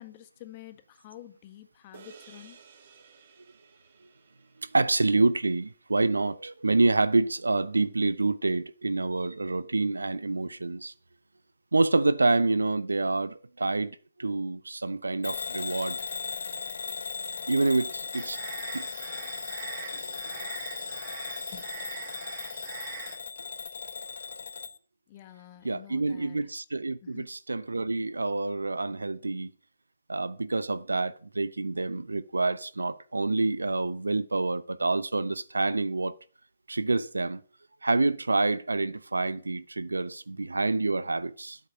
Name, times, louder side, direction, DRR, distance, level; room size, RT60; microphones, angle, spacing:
voice 1, 0.0-2.6 21.5-21.9 25.1-26.4 27.0-27.3, left 12 dB, 35° left, 1.5 m, -48 dB
sound 1, 1.9-6.5, right 6 dB, 50° right, 2.3 m, -56 dB
voice 2, 4.6-10.9 11.7-16.0 17.5-18.4 18.7-18.9 25.6-29.5 30.1-36.2 36.7-37.4 37.8-41.6, right 3 dB, 75° right, 0.8 m, -27 dB
Bell / Alarm, 15.2-24.8, left 4 dB, 60° left, 1.1 m, -37 dB
sound 2, 18.1-23.2, right 8 dB, 30° right, 1.7 m, -43 dB
13.0 x 8.2 x 6.4 m
figure-of-eight pair, 125°, 0 cm